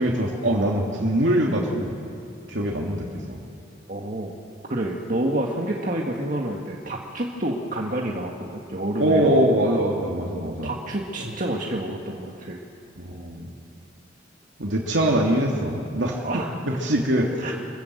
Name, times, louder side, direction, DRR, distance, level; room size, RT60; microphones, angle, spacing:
voice 1, 0.0-1.9 2.5-3.4 9.0-10.7 13.0-13.5 14.6-17.5, right 1 dB, 75° right, -1 dB, 2.6 m, -23 dB
voice 2, 3.9-4.3 4.7-9.5 10.4-12.6 16.2-16.5 17.4-17.5, right 1 dB, 45° right, 0 dB, 1.7 m, -28 dB
26.5 x 15.0 x 7.9 m, 2.6 s
head